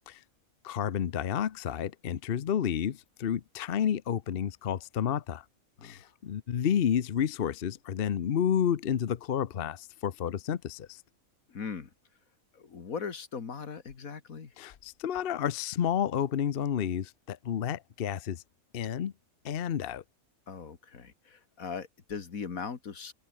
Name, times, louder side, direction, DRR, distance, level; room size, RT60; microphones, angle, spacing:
voice 1, 0.6-5.4 5.8-11.0 14.6-18.4 18.7-19.1 19.4-20.0, left 9 dB, 50° left, 0.9 m, -30 dB
voice 2, 5.8-6.1 11.5-11.9 12.5-14.5 20.5-23.1, left 6 dB, 80° left, 2.2 m, -39 dB
omnidirectional pair, 1.4 m